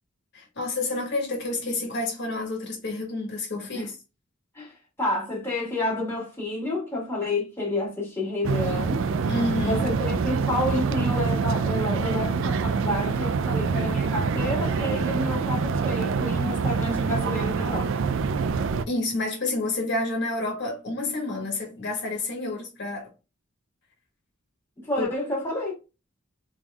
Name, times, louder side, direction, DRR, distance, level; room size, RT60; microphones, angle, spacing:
voice 1, 0.3-4.0 9.3-9.8 18.9-23.1 25.0-25.1, left 2 dB, 60° left, 1.3 m, -29 dB
voice 2, 5.0-9.0 9.6-18.1 24.8-25.8, left 1 dB, 10° left, 1.6 m, -29 dB
sound 1, 8.4-18.8, right 5 dB, 65° right, 0.3 m, -25 dB
3.6 x 3.5 x 2.3 m
head